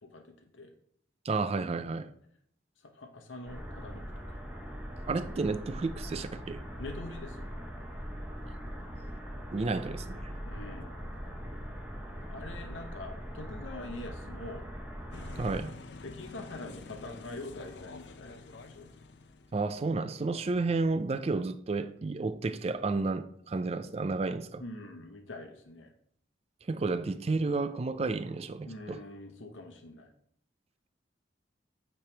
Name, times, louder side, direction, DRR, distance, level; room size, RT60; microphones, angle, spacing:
voice 1, 0.0-0.7 2.9-4.4 6.8-7.5 10.5-11.0 12.0-14.7 16.0-18.9 24.6-25.9 28.7-30.1, left 2 dB, 85° left, 0.9 m, -44 dB
voice 2, 1.2-2.1 5.1-6.6 9.5-10.3 15.4-15.7 19.5-24.6 26.7-29.0, right 3 dB, 35° right, 0.4 m, -31 dB
spaceship fly over, 3.5-15.6, equal, 10° right, 1.0 m, -41 dB
sound 1, 15.1-19.7, left 3 dB, 65° left, 0.6 m, -48 dB
8.7 x 3.3 x 4.5 m
head